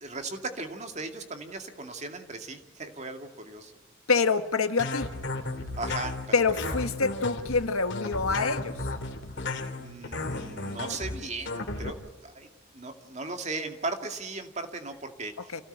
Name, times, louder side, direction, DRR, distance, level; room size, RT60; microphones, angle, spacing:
voice 1, 0.0-3.7 5.8-6.9 9.8-12.5 12.7-15.6, right 3 dB, 30° right, 6 dB, 2.3 m, -37 dB
voice 2, 4.1-5.1 6.3-8.8 15.5-15.6, left 4 dB, 90° left, 9 dB, 1.6 m, -26 dB
sound 1, 4.8-11.9, left 2 dB, 55° left, 2.6 m, -34 dB
28.0 x 17.0 x 8.1 m, 1.2 s
head